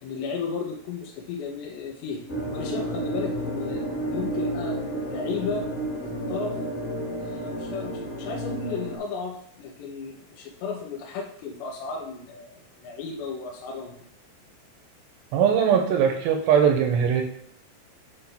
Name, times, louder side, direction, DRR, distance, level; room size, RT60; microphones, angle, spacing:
voice 1, 0.0-2.2 2.5-5.7 6.0-6.6 7.1-13.9, left 5 dB, 75° left, -1 dB, 2.9 m, -34 dB
sound 1, 2.3-9.0, right 1 dB, 25° left, 2.2 m, -31 dB
voice 2, 15.3-17.2, right 8 dB, 75° right, 3 dB, 2.7 m, -20 dB
8.1 x 4.2 x 5.7 m, 0.62 s
omnidirectional pair, 5.7 m